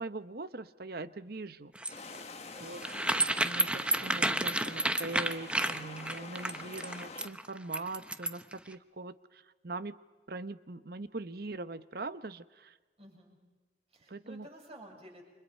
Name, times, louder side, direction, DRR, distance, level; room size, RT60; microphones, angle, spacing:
voice 1, 0.0-1.7 2.6-2.8 3.4-10.0 10.3-12.7 14.1-14.5, right 3 dB, 55° right, 13 dB, 0.9 m, -41 dB
sound 1, 1.8-8.5, right 1 dB, 5° right, 0.8 m, -31 dB
sound 2, 1.9-7.3, left 3 dB, 35° left, 1.5 m, -47 dB
voice 2, 2.4-3.0 13.0-13.4 13.9-15.2, right 1 dB, 35° right, 0 dB, 7.2 m, -53 dB
29.5 x 26.5 x 5.5 m, 1.3 s
head